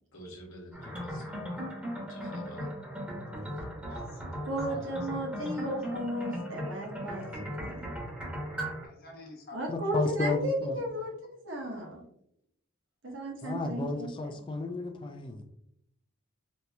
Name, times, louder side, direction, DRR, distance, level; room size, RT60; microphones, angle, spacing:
voice 1, 0.1-1.5 2.1-2.7, equal, 75° left, -1 dB, 1.0 m, -48 dB
sound 1, 0.7-8.9, equal, 5° right, 0.8 m, -38 dB
voice 2, 3.8-5.2 5.5-5.6 8.8-10.3, left 1 dB, 45° left, 0 dB, 0.8 m, -49 dB
voice 3, 4.5-7.3 7.6-7.9 9.5-11.1 11.4-12.0 13.0-14.3, equal, 65° right, 0 dB, 0.9 m, -34 dB
voice 4, 9.7-10.8 13.4-15.4, left 2 dB, 25° left, 5 dB, 0.3 m, -33 dB
4.1 x 2.7 x 2.2 m, 0.74 s
head